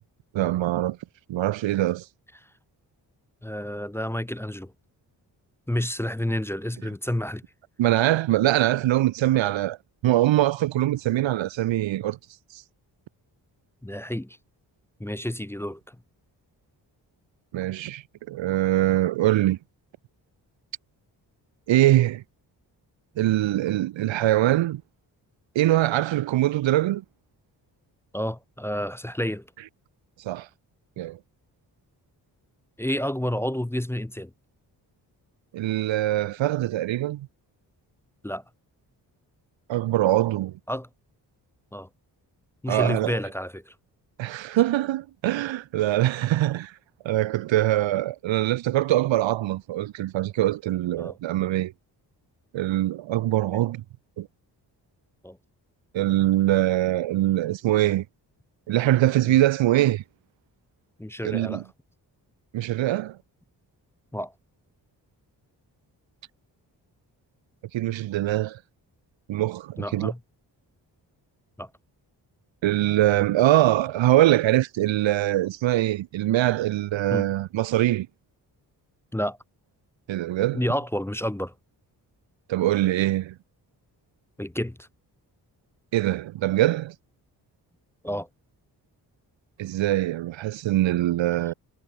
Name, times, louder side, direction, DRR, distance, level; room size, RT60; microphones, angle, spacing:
voice 1, 0.3-1.0 1.3-2.0 7.8-9.8 10.0-12.2 12.5-12.6 17.5-19.6 21.7-22.2 23.2-24.8 25.5-27.0 30.2-30.5 31.0-31.2 35.5-37.3 39.7-40.5 42.7-43.2 44.2-46.7 47.0-51.7 52.5-53.8 54.2-54.3 55.9-58.0 58.7-60.0 61.2-61.6 62.5-63.2 67.7-68.6 69.3-70.1 72.6-78.1 80.1-80.6 82.5-83.3 85.9-86.9 89.6-91.5, right 14 dB, 80° right, 0.9 m, -23 dB
voice 2, 3.4-4.7 5.7-7.4 13.8-14.4 15.0-16.0 28.1-29.5 32.8-34.3 38.2-38.4 40.7-40.9 41.7-41.9 42.6-43.7 51.0-51.1 53.5-53.6 55.2-55.4 59.2-59.4 61.0-61.7 64.1-64.3 69.8-70.2 71.6-71.7 77.1-77.3 79.1-79.4 80.5-81.5 84.4-84.9 88.0-88.3, equal, 5° left, 0.6 m, -30 dB
supercardioid pair, 50°, 45 cm